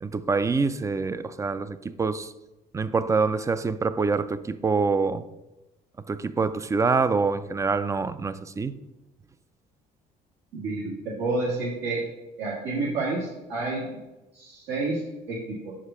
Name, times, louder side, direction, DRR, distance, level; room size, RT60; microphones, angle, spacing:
voice 1, 0.0-2.3 2.7-5.3 6.1-8.8, right 4 dB, 20° right, 14 dB, 0.3 m, -25 dB
voice 2, 10.5-12.1 12.4-13.9 14.3-15.7, right 3 dB, 80° right, -5 dB, 1.6 m, -29 dB
5.8 x 5.0 x 5.5 m, 1.0 s
cardioid pair, 110°, 17 cm